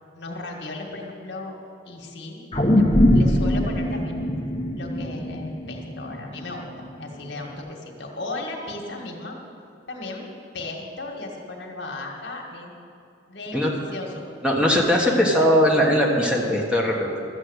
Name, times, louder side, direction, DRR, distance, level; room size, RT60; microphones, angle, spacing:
voice 1, 0.1-1.5 1.8-2.4 2.7-2.9 3.1-4.2 4.8-6.6 7.0-9.4 9.9-10.2 10.5-12.7 13.3-14.1 15.1-15.2, left 2 dB, 65° left, 0 dB, 1.8 m, -35 dB
sound 1, 2.5-7.0 7.4-7.5, left 1 dB, 25° left, 1.1 m, -22 dB
voice 2, 14.4-17.2, equal, 5° right, -2 dB, 1.4 m, -20 dB
13.5 x 7.5 x 8.1 m, 2.6 s
head